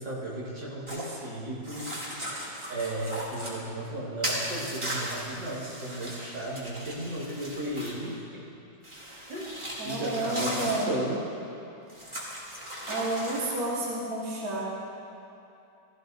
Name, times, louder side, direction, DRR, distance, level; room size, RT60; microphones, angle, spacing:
voice 1, 0.0-2.4 2.7-8.5 9.3-9.5 9.8-11.3, right 1 dB, 80° right, -6 dB, 2.8 m, -35 dB
sound 1, 0.9-1.1 1.6-3.6 4.2-8.1 8.8-10.9 11.9-13.6, equal, 15° right, 2.4 m, -37 dB
voice 2, 9.8-10.9 12.9-14.6, right 2 dB, 55° right, -6 dB, 2.2 m, -30 dB
16.0 x 15.0 x 2.7 m, 2.8 s
omnidirectional pair, 1.9 m